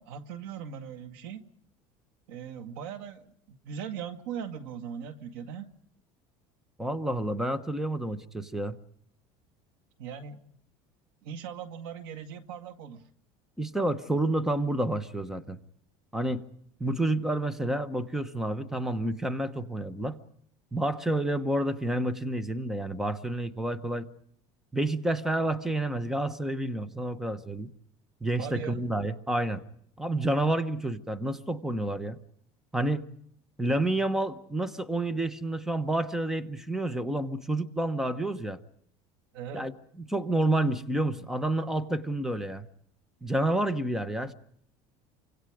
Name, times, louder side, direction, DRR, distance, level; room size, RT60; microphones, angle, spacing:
voice 1, 0.0-1.5 2.3-5.7 10.0-10.4 11.2-13.0 28.4-28.8 39.3-39.7, right 8 dB, 85° right, 10 dB, 2.1 m, -39 dB
voice 2, 6.8-8.7 13.6-15.6 16.1-16.4 16.8-20.2 20.7-24.1 24.7-27.7 28.2-29.6 30.0-32.2 32.7-33.0 33.6-38.6 39.5-39.7 40.1-42.6 43.2-44.3, right 1 dB, 5° right, 13 dB, 1.1 m, -29 dB
30.0 x 25.0 x 5.0 m, 0.67 s
cardioid pair, 150°, 12 cm